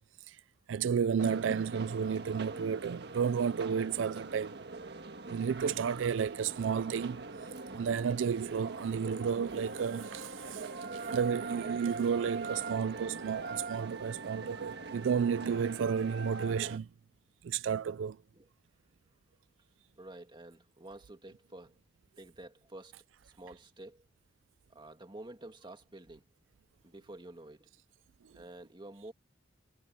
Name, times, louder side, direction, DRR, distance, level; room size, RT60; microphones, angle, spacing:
voice 1, 0.7-4.6 5.3-7.2 7.7-16.9 17.4-18.2, right 7 dB, 85° right, 0.4 m, -32 dB
sound 1, 1.2-16.8, right 3 dB, 60° right, 1.6 m, -42 dB
sound 2, 9.1-9.6 10.0-10.5 10.9-11.4 11.9-12.3 13.5-13.9 14.7-15.1, left 7 dB, 40° left, 6.2 m, -72 dB
voice 2, 20.0-21.8 22.2-23.0 23.2-24.1 24.7-26.3 26.8-27.7 28.3-29.1, right 1 dB, 25° right, 2.1 m, -50 dB
head